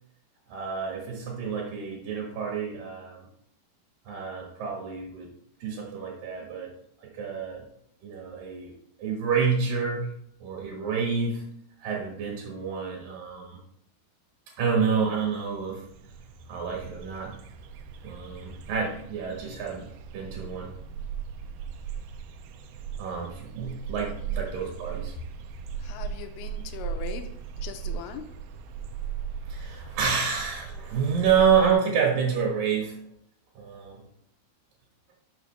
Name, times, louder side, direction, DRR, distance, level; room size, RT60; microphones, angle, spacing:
voice 1, 0.5-3.2 4.0-5.3 5.6-6.7 7.0-7.6 8.0-8.7 9.0-10.1 10.4-11.4 11.8-13.6 14.6-15.8 16.5-17.4 18.0-19.9 20.1-20.7 23.0-25.1 29.5-33.0 33.6-34.0, right 6 dB, 65° right, -1 dB, 3.0 m, -28 dB
sound 1, 14.9-15.0 15.2-31.7, right 7 dB, 90° right, 2.8 m, -38 dB
voice 2, 25.8-28.3, left 9 dB, 85° left, 7 dB, 2.5 m, -40 dB
12.0 x 6.2 x 3.3 m, 0.73 s
omnidirectional pair, 4.7 m